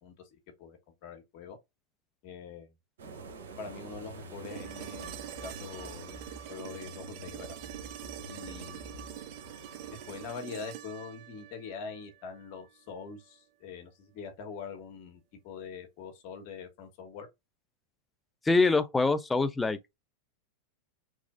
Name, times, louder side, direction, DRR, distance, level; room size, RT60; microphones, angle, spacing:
voice 1, 0.0-1.6 2.2-2.7 3.6-7.6 8.3-8.9 9.9-17.3, left 5 dB, 55° left, 1.1 m, -44 dB
sound 1, 3.0-10.3, right 4 dB, 80° right, 0.8 m, -49 dB
sound 2, 3.9-9.2, left 2 dB, 75° left, 0.6 m, -49 dB
sound 3, 4.4-12.5 14.6-14.7, right 12 dB, 55° right, 0.4 m, -45 dB
voice 2, 18.4-20.0, left 3 dB, 10° left, 0.4 m, -25 dB
3.1 x 2.4 x 2.4 m
hypercardioid pair, 110°, 0 cm